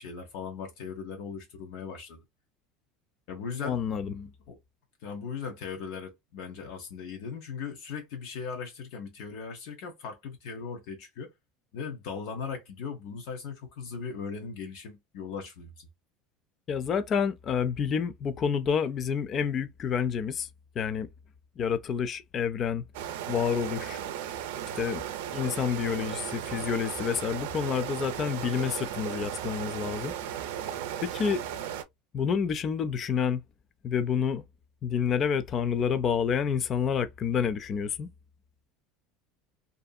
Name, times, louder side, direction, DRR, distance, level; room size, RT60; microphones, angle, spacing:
voice 1, 0.0-2.2 3.3-4.6 5.0-11.3 11.7-15.9, left 6 dB, 60° left, 0.8 m, -38 dB
voice 2, 3.6-4.1 16.7-20.5 20.8-21.1 21.6-22.8 23.3-24.0 24.8-25.0 25.3-30.1 31.0-31.4 32.1-33.4 33.8-34.4 34.8-38.1, left 7 dB, 30° left, 0.3 m, -28 dB
sound 1, 22.9-31.8, right 10 dB, 90° right, 0.5 m, -36 dB
2.6 x 2.5 x 2.2 m
cardioid pair, 165°, 0 cm